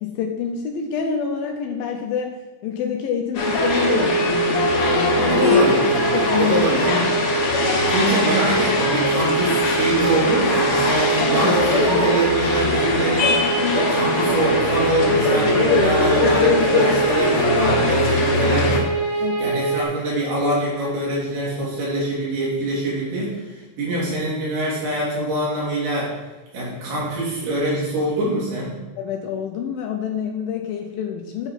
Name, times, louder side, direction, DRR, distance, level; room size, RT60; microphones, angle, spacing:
voice 1, 0.0-5.4 6.1-6.6 19.2-19.6 29.0-31.5, left 7 dB, 80° left, 3 dB, 2.2 m, -27 dB
sound 1, 3.3-18.8, left 3 dB, 60° left, 2.8 m, -21 dB
sound 2, 3.3-19.8, right 4 dB, 30° left, 1.8 m, -24 dB
voice 2, 5.2-7.0 7.9-13.4 13.7-26.1 26.5-28.8, right 1 dB, 75° right, -6 dB, 4.6 m, -24 dB
9.1 x 4.5 x 5.3 m, 1.1 s
omnidirectional pair, 4.6 m